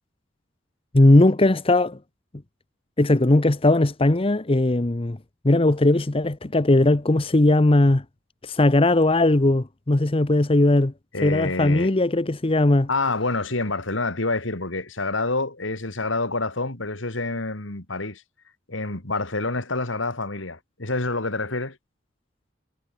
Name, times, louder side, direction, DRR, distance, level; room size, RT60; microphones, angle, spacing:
voice 1, 0.9-2.0 3.0-5.2 5.4-8.0 8.4-10.9 11.2-12.9, left 2 dB, 30° left, 0.8 m, -18 dB
voice 2, 11.1-11.9 12.9-18.2 18.7-21.8, left 3 dB, 75° left, 3.2 m, -27 dB
head